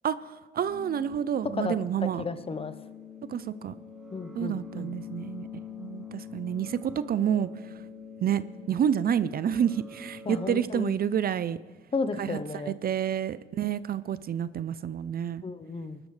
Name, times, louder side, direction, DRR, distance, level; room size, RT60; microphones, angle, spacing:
voice 1, 0.0-2.2 3.3-3.8 4.3-5.5 5.8-7.7 8.2-8.4 8.7-11.6 12.2-15.4, right 9 dB, 50° right, 16 dB, 0.5 m, -29 dB
sound 1, 0.6-10.6, left 6 dB, ahead, 1.1 m, -44 dB
voice 2, 2.2-2.7 4.1-4.9 10.3-11.0 11.9-12.8 15.4-16.0, left 4 dB, 30° left, 12 dB, 0.8 m, -33 dB
21.0 x 12.5 x 3.3 m, 1.3 s
cardioid pair, 90°, 20 cm